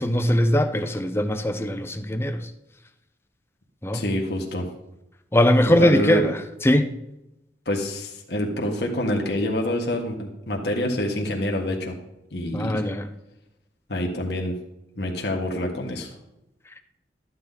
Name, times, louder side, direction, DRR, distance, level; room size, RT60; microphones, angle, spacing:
voice 1, 0.0-2.5 3.8-4.0 5.3-6.4 6.6-6.9 12.5-13.1, left 1 dB, 15° left, 0.7 m, -21 dB
voice 2, 3.9-4.7 5.6-6.2 7.7-12.0 12.3-12.8 13.9-14.6 15.0-16.1, left 1 dB, 65° left, 1.7 m, -26 dB
13.5 x 9.6 x 4.1 m
head